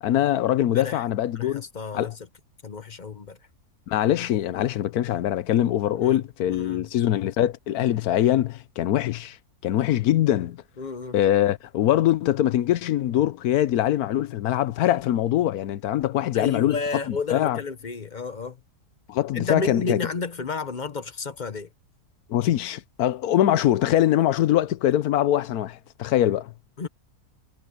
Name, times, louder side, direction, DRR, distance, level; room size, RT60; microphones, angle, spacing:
voice 1, 0.0-1.6 1.9-2.1 3.9-9.4 9.6-10.6 11.1-16.8 17.1-17.6 19.1-20.0 22.3-26.5, left 12 dB, 80° left, 1.2 m, -23 dB
voice 2, 0.7-1.0 1.3-2.1 2.6-3.4 6.0-6.9 10.8-11.2 16.3-18.6 19.3-21.7 26.8-26.9, left 4 dB, 40° left, 0.8 m, -32 dB
omnidirectional pair, 1.6 m